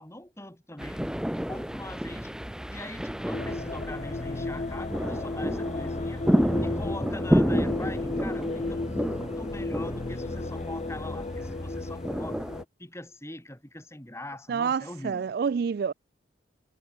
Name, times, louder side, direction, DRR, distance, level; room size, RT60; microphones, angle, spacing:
voice 1, 0.0-2.3 2.7-6.3 6.6-12.5 12.8-15.3, left 1 dB, 15° left, 5.1 m, -42 dB
sound 1, 0.8-12.6, equal, 5° right, 0.7 m, -30 dB
sound 2, 3.3-12.6, left 2 dB, 35° left, 0.5 m, -33 dB
voice 2, 14.5-15.9, right 6 dB, 50° right, 0.3 m, -28 dB
head